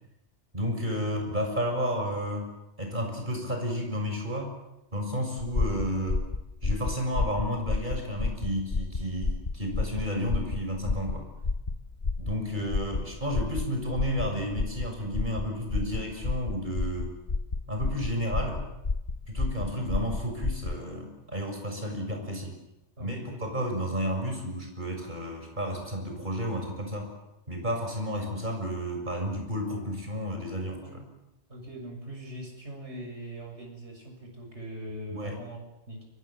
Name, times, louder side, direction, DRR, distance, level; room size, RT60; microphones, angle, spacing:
voice 1, 0.5-2.5 2.8-4.5 4.9-6.3 6.6-11.3 12.2-17.1 17.7-18.6 19.3-22.5 23.0-27.1 27.5-30.8 35.1-35.4, equal, 45° right, 3 dB, 6.7 m, -32 dB
sound 1, 5.4-20.8, left 3 dB, 45° left, 1.3 m, -31 dB
voice 2, 23.0-23.6 30.8-31.1 31.5-36.0, right 1 dB, 75° right, 1 dB, 7.4 m, -42 dB
28.5 x 25.0 x 7.6 m, 0.91 s
omnidirectional pair, 1.2 m